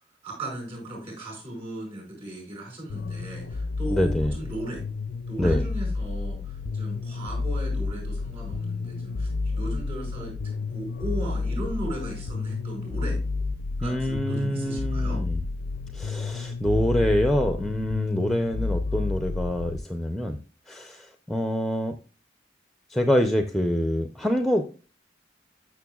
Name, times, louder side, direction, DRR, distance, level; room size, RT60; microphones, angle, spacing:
voice 1, 0.2-4.8 5.3-10.4 10.7-13.2 13.8-15.2, right 1 dB, 30° right, 0 dB, 5.2 m, -36 dB
sound 1, 2.9-19.8, left 3 dB, 65° left, 0.4 m, -30 dB
voice 2, 3.9-4.3 5.4-5.6 13.8-15.4 15.9-20.4 20.7-22.0 22.9-24.7, equal, ahead, 6 dB, 0.5 m, -26 dB
13.0 x 6.6 x 2.3 m, 0.35 s
head